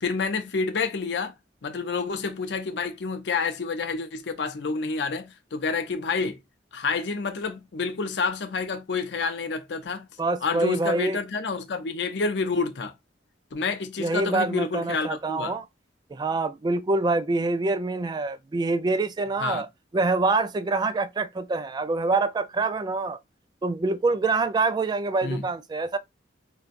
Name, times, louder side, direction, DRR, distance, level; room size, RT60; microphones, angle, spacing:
voice 1, 0.0-1.3 1.6-6.4 6.7-10.1 10.4-12.9 13.5-15.5 19.4-19.6 25.2-25.4, left 4 dB, 65° left, 0.5 m, -28 dB
voice 2, 10.2-11.2 14.0-15.6 16.1-19.7 19.9-23.2 23.6-26.0, right 3 dB, 25° right, 0.3 m, -25 dB
4.0 x 2.2 x 2.5 m
head